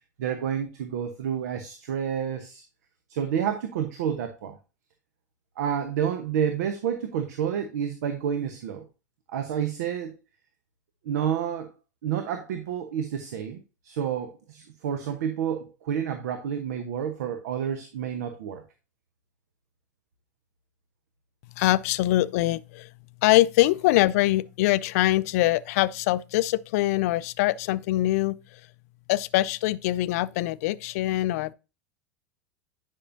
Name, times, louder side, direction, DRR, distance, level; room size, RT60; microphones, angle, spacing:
voice 1, 0.2-2.6 3.1-4.6 5.6-8.8 9.3-10.1 11.0-11.7 12.0-18.6, right 8 dB, 65° right, 0.9 m, -29 dB
voice 2, 21.6-22.9 23.2-28.6 29.1-31.5, left 16 dB, 60° left, 0.4 m, -23 dB
9.9 x 5.4 x 2.6 m
figure-of-eight pair, 85°, 9 cm